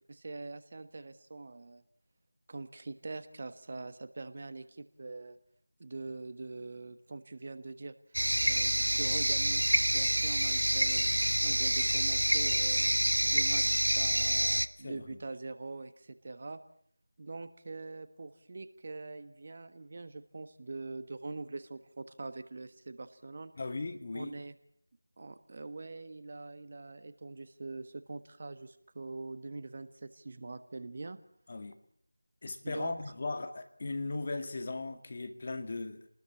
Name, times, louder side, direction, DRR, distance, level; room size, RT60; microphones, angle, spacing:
voice 1, 0.0-1.8 2.5-5.4 5.8-7.9 8.4-11.1 11.4-13.0 13.3-16.6 17.2-23.5 24.1-24.5 25.2-31.2 32.6-32.9, right 3 dB, 40° right, 1.3 m, -43 dB
sound 1, 8.1-14.7, right 1 dB, 85° right, 1.1 m, -27 dB
voice 2, 23.6-24.3 31.5-31.7 32.4-36.0, left 3 dB, 35° left, 2.0 m, -37 dB
28.0 x 20.0 x 7.2 m
figure-of-eight pair, 170°, 0 cm